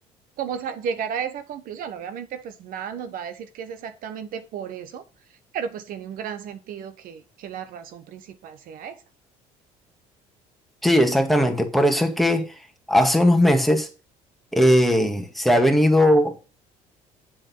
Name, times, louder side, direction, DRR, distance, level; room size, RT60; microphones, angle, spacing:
voice 1, 0.4-5.0 5.5-9.0, right 7 dB, 65° right, 1.2 m, -33 dB
voice 2, 10.8-12.5 12.9-13.9 14.5-16.4, equal, ahead, 2.1 m, -18 dB
7.5 x 6.3 x 5.5 m
supercardioid pair, 85°, 15 cm